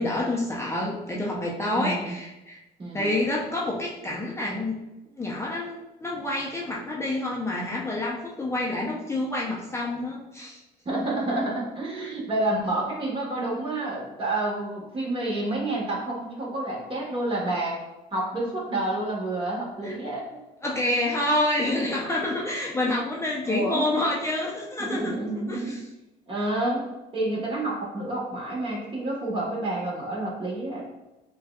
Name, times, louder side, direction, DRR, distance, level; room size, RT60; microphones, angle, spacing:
voice 1, 0.0-2.6 2.9-4.8 5.1-10.6 19.8-19.9 20.6-25.1 25.5-25.8, left 1 dB, 15° left, -4 dB, 0.6 m, -28 dB
voice 2, 1.7-2.1 2.8-3.1 10.8-17.8 18.1-20.4 23.4-23.9 24.8-25.8 26.3-26.9 27.1-30.9, right 2 dB, 30° right, -3 dB, 1.4 m, -29 dB
6.1 x 2.3 x 2.3 m, 0.98 s
cardioid pair, 110°, 17 cm